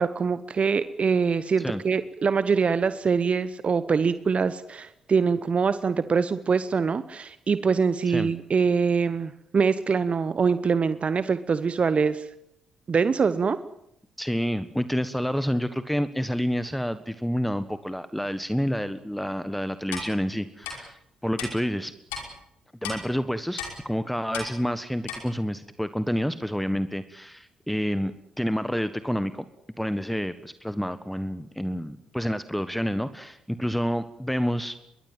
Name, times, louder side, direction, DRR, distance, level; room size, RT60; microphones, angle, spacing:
voice 1, 0.0-12.3 12.9-13.6, right 5 dB, 40° right, 14 dB, 1.0 m, -24 dB
voice 2, 14.2-21.9 22.8-28.1 28.4-29.4 29.8-34.8, equal, 5° left, 13 dB, 1.4 m, -28 dB
Clock, 19.9-20.1 20.6-20.7 21.4-21.5 22.1-22.2 22.8-23.0 23.6-23.7 24.3-24.5 25.1-25.2, left 6 dB, 75° left, 5.4 m, -33 dB
24.0 x 22.5 x 7.6 m, 0.77 s
figure-of-eight pair, 40°, 3 cm